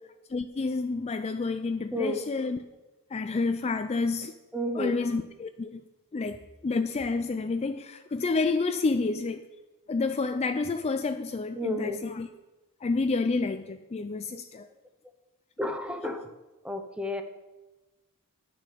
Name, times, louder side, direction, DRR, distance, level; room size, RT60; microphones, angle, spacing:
voice 1, 0.3-2.6 3.1-4.3 4.7-5.8 6.1-9.4 9.9-12.3 12.8-14.7, left 3 dB, 30° left, 0.4 m, -29 dB
voice 2, 1.9-2.2 4.5-5.0 11.5-12.0 15.6-16.3 16.6-17.2, left 1 dB, 5° right, 0.8 m, -31 dB
10.0 x 6.5 x 6.8 m
head